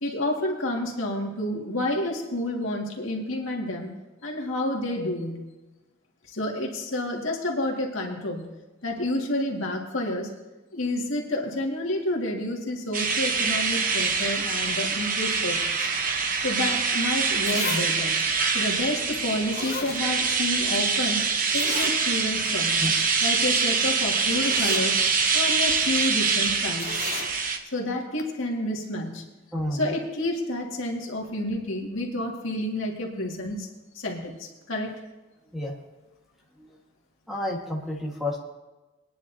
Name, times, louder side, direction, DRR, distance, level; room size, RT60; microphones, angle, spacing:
voice 1, 0.0-3.9 4.2-5.5 6.3-8.5 8.8-10.3 10.7-15.9 16.4-18.1 18.5-21.3 21.5-22.8 23.2-25.0 25.3-27.0 27.7-29.2 29.7-33.7 33.9-34.9, left 1 dB, 70° left, 0 dB, 2.0 m, -29 dB
sound 1, 12.9-27.6, right 5 dB, 40° right, 0.9 m, -25 dB
Zipper (clothing), 16.9-17.0 17.4-17.9 18.2-18.3 19.1-19.2 19.5-20.5 20.7-20.8 21.5-22.0 22.4-22.5 22.8-23.0 23.9-24.0 24.3-24.9 26.8-27.3 28.2-28.3, left 5 dB, 45° left, 1.0 m, -34 dB
voice 2, 29.5-29.9 35.5-35.7 36.6-36.8 37.3-38.4, left 1 dB, ahead, -2 dB, 1.5 m, -30 dB
22.0 x 10.0 x 2.8 m, 1.1 s
head